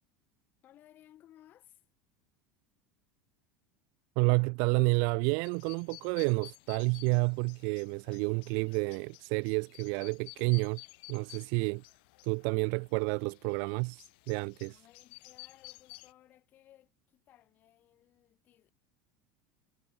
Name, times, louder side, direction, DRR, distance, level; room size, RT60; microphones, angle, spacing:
voice 1, 0.6-1.9 14.7-18.7, left 13 dB, 30° left, 5.5 m, -61 dB
voice 2, 4.2-10.8 11.1-11.8 12.2-14.8, right 38 dB, 50° right, 0.4 m, -30 dB
sound 1, 5.4-16.1, left 30 dB, 60° left, 1.2 m, -53 dB
cardioid pair, 175°, 6 cm